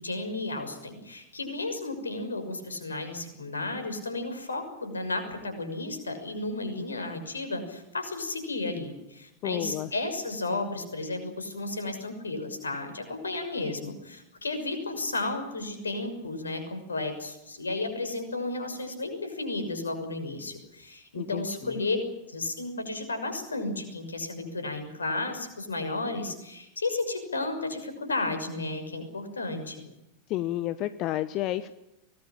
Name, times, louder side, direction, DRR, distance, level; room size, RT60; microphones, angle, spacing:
voice 1, 0.0-22.0 22.3-29.8, left 2 dB, 75° left, 7 dB, 6.3 m, -33 dB
voice 2, 9.4-9.9 21.2-21.8 30.3-31.7, left 14 dB, 40° left, 14 dB, 1.0 m, -31 dB
24.0 x 19.5 x 8.9 m, 0.90 s
figure-of-eight pair, 90°, 0 cm